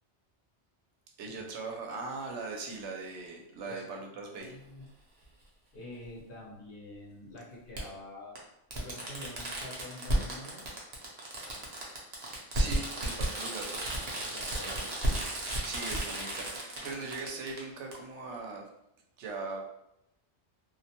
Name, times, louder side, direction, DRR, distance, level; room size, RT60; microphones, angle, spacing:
voice 1, 1.2-4.5 12.5-14.0 14.6-14.9 15.6-18.7 19.2-19.7, right 3 dB, 85° right, 1 dB, 0.9 m, -40 dB
voice 2, 4.2-4.9 5.7-8.4 8.7-10.6 13.3-13.4 14.2-14.8, left 1 dB, 55° left, -4 dB, 0.8 m, -47 dB
Fireworks, 4.4-4.5 6.0-6.1 7.7-7.8 8.3-8.4 8.7-17.6 17.9-18.0, right 1 dB, 45° right, 0.6 m, -33 dB
2.3 x 2.1 x 2.8 m, 0.83 s
omnidirectional pair, 1.2 m